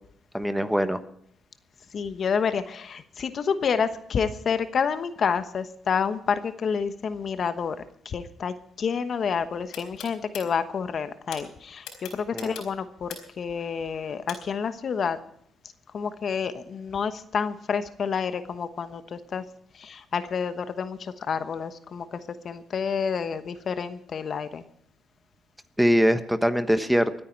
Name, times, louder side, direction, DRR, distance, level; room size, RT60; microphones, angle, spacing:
voice 1, 0.3-1.0 12.3-12.6 25.8-27.2, equal, 5° right, 11 dB, 1.2 m, -22 dB
voice 2, 1.9-15.2 15.9-19.4 19.7-24.6, left 6 dB, 50° left, 11 dB, 1.1 m, -29 dB
sound 1, 9.7-10.4 11.3-11.4 11.8-13.4 14.3-14.4, left 8 dB, 90° left, 4.3 m, -39 dB
24.0 x 9.4 x 4.6 m, 0.69 s
cardioid pair, 90°, 0 cm